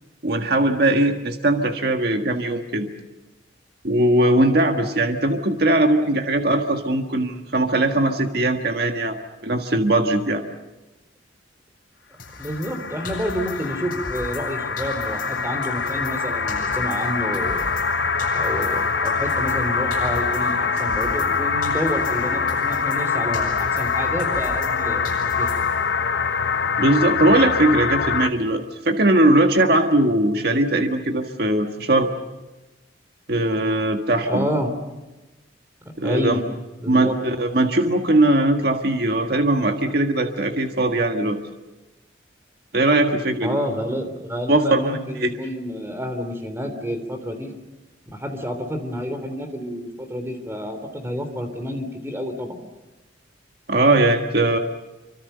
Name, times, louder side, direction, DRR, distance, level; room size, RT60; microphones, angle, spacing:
voice 1, 0.2-2.9 3.8-9.2 9.4-10.4 26.8-32.1 33.3-34.5 36.0-36.4 36.9-41.4 42.7-43.6 44.5-45.3 53.7-54.6, right 1 dB, 55° right, 5 dB, 1.6 m, -20 dB
sound 1, 12.2-14.5 14.8-17.9 18.2-21.4 21.6-24.8 25.0-25.9, left 2 dB, 50° left, 8.0 m, -39 dB
sound 2, 12.3-28.3, left 5 dB, 65° left, 1.0 m, -24 dB
voice 2, 12.4-17.7 18.3-25.5 34.2-34.7 36.0-36.4 36.8-37.2 43.4-47.5 48.1-52.6, equal, 15° right, 7 dB, 3.3 m, -29 dB
27.5 x 25.0 x 6.8 m, 1.1 s
head